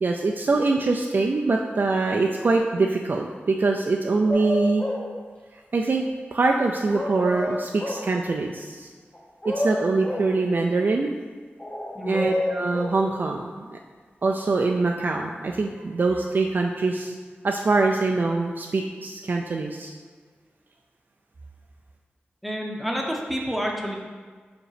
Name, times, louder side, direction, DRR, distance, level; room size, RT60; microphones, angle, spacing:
voice 1, 0.0-4.8 5.7-6.0 6.3-8.9 9.4-11.1 12.1-13.8 14.2-17.1 17.4-19.9, right 3 dB, 55° right, 1 dB, 0.4 m, -24 dB
sound 1, 4.3-5.1 6.9-8.1 9.1-10.3 11.6-13.0, left 1 dB, 30° left, 1.1 m, -29 dB
voice 2, 22.4-24.0, equal, ahead, -1 dB, 0.9 m, -29 dB
5.1 x 5.0 x 5.0 m, 1.5 s
wide cardioid pair, 95°, 4 cm